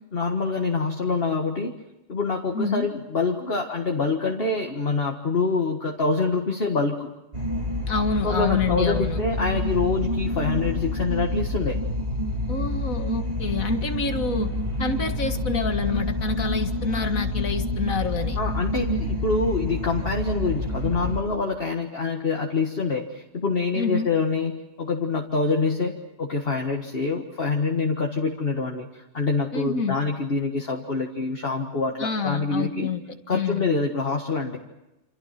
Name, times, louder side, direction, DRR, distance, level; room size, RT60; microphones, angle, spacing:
voice 1, 0.1-1.8 2.1-7.1 8.2-11.8 18.4-32.9 33.3-34.6, left 4 dB, 45° left, 1 dB, 1.9 m, -26 dB
voice 2, 2.5-2.9 7.9-9.2 12.5-14.5 14.8-18.4 23.7-24.1 29.5-30.0 32.0-33.0 33.3-33.7, left 4 dB, 80° left, 7 dB, 2.3 m, -27 dB
sound 1, 7.3-21.2, left 1 dB, 50° right, 4.3 m, -28 dB
28.0 x 27.5 x 6.0 m, 0.97 s
omnidirectional pair, 1.4 m